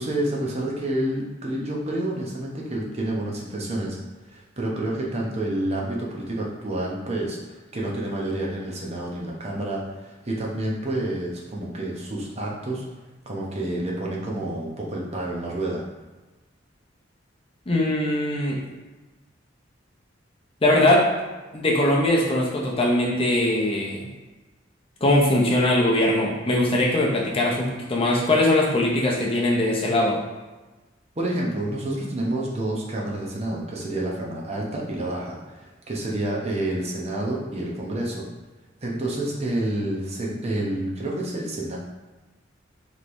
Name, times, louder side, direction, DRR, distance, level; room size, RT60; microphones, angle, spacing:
voice 1, 0.0-4.0 4.3-12.8 13.2-15.8 31.2-38.3 38.8-41.8, right 1 dB, 35° right, -3 dB, 0.7 m, -29 dB
voice 2, 17.7-18.6 20.6-21.1 21.5-24.1 25.0-30.2, left 1 dB, 30° left, -2 dB, 0.6 m, -21 dB
5.0 x 3.1 x 2.6 m, 1.2 s
head